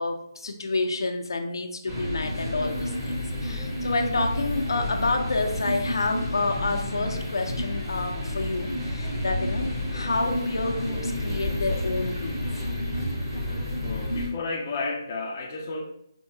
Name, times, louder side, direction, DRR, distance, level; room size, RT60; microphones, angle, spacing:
voice 1, 0.0-3.1 3.4-12.4, left 3 dB, 80° left, 3 dB, 0.6 m, -29 dB
sound 1, 1.9-14.3, left 1 dB, 10° right, 0.8 m, -30 dB
voice 2, 13.8-15.8, left 3 dB, 25° left, 0 dB, 0.4 m, -32 dB
4.4 x 2.7 x 2.7 m, 0.75 s
hypercardioid pair, 170°, 2 cm